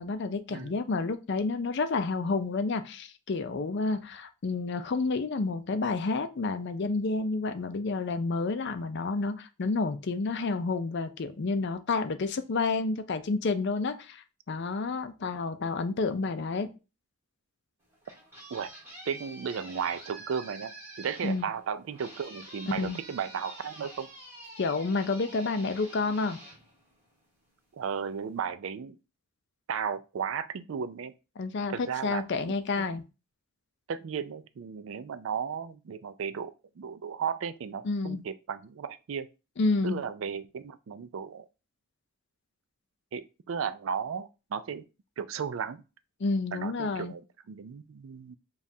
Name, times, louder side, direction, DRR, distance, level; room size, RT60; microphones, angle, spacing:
voice 1, 0.0-16.7 21.2-21.5 22.7-23.0 24.6-26.4 31.4-33.0 37.8-38.2 39.6-40.0 46.2-47.1, left 3 dB, 55° left, 0.5 m, -30 dB
sound 1, 17.8-27.5, right 1 dB, 15° right, 2.3 m, -48 dB
voice 2, 19.1-24.1 27.7-29.0 29.7-31.1 31.7-32.9 33.9-39.3 39.8-41.5 43.1-44.9 45.2-45.8 46.5-47.2 47.5-48.4, right 6 dB, 65° right, 0.4 m, -35 dB
7.1 x 2.4 x 2.7 m
head